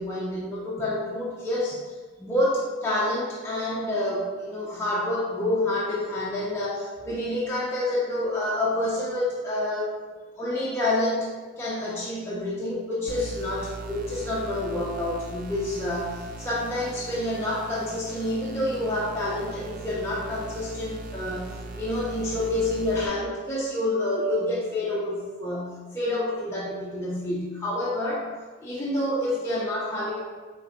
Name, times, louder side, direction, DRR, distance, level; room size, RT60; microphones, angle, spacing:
voice 1, 0.0-9.9 10.4-11.3 11.6-28.3 28.6-30.2, left 1 dB, 15° left, -7 dB, 0.5 m, -28 dB
sound 1, 13.1-23.1, right 3 dB, 40° right, 0.3 m, -39 dB
5.3 x 3.3 x 2.9 m, 1.4 s
head